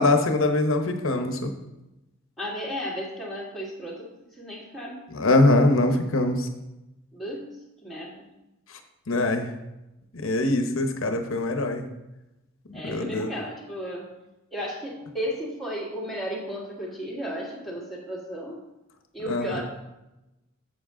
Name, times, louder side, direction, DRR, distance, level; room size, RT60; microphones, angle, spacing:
voice 1, 0.0-1.5 5.1-6.5 9.1-9.5 10.1-11.9 12.8-13.3 19.3-19.5, left 2 dB, 75° left, 6 dB, 0.9 m, -22 dB
voice 2, 2.4-5.0 7.1-8.3 12.7-14.1 14.5-18.6 19.1-19.6, equal, ahead, -5 dB, 1.8 m, -34 dB
7.8 x 7.3 x 3.8 m, 0.96 s
head